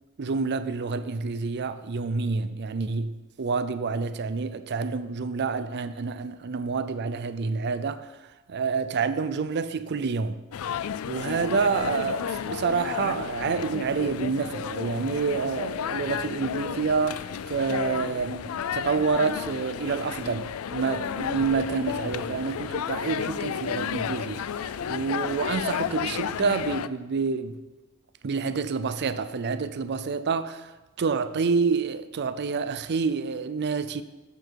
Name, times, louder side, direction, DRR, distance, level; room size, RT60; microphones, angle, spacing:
voice 1, 0.2-8.1 8.5-10.4 11.1-27.6 28.2-30.7 31.0-34.0, right 5 dB, 50° right, 0.5 m, -28 dB
sound 1, 10.5-26.9, left 8 dB, 70° left, 0.4 m, -32 dB
12.0 x 7.1 x 4.6 m
head